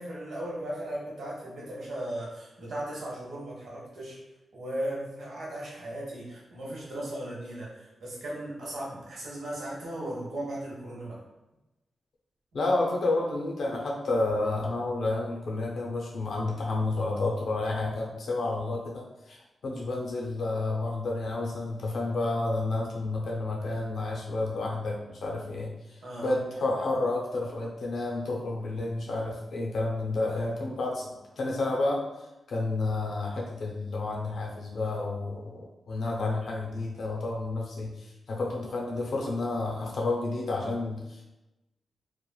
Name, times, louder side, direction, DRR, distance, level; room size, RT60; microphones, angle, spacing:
voice 1, 0.0-4.2 4.5-11.2 26.0-26.4, right 1 dB, 75° right, -5 dB, 1.0 m, -37 dB
voice 2, 12.5-19.4 19.6-25.7 26.2-32.0 32.5-38.0 38.3-41.2, left 2 dB, 65° left, -2 dB, 0.6 m, -30 dB
3.0 x 2.4 x 2.2 m, 0.99 s
wide cardioid pair, 175°, 0 cm